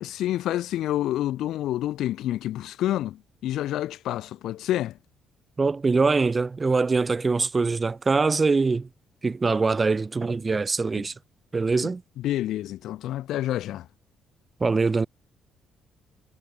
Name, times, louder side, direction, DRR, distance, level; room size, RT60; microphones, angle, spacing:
voice 1, 0.0-5.0 11.0-11.1 12.2-13.9, left 13 dB, 70° left, 0.6 m, -28 dB
voice 2, 5.6-8.9 9.2-11.1 11.5-12.0 14.6-15.1, right 4 dB, 20° right, 1.0 m, -23 dB
cardioid pair, 155°, 0 cm